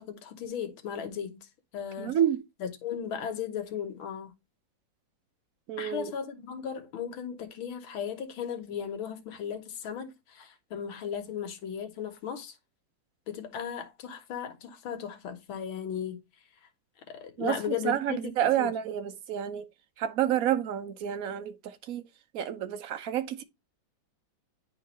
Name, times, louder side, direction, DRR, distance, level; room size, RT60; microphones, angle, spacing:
voice 1, 0.0-1.4 1.7-2.2 2.6-4.3 5.8-12.6 13.3-16.2 17.1-18.7, left 8 dB, 85° left, 1.9 m, -36 dB
voice 2, 2.0-2.4 5.7-6.1 17.4-19.6 20.0-22.0 22.3-23.4, right 10 dB, 60° right, 0.9 m, -29 dB
10.0 x 3.7 x 3.0 m
omnidirectional pair, 2.2 m